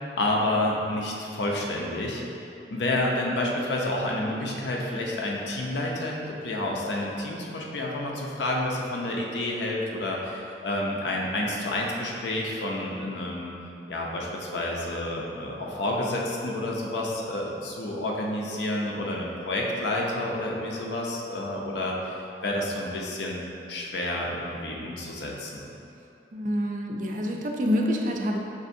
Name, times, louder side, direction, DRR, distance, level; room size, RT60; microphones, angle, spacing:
voice 1, 0.2-2.2 2.7-13.5 13.9-22.0 22.4-23.4 23.7-25.7, left 1 dB, 80° left, -2 dB, 0.5 m, -29 dB
voice 2, 26.3-28.4, equal, 45° right, 1 dB, 0.3 m, -27 dB
5.4 x 2.5 x 2.6 m, 2.8 s
head